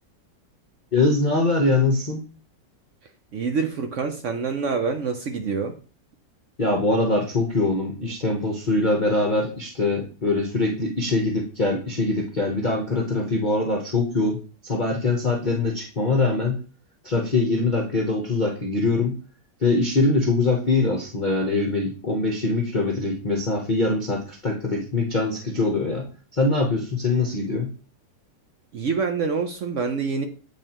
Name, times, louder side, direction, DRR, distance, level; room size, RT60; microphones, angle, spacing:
voice 1, 0.9-2.2 6.6-16.6 17.0-19.2 19.6-27.7, left 3 dB, 35° left, -1 dB, 0.8 m, -23 dB
voice 2, 3.3-5.8 28.7-30.2, right 5 dB, 65° right, 6 dB, 0.7 m, -26 dB
9.1 x 4.1 x 2.9 m, 0.38 s
omnidirectional pair, 2.0 m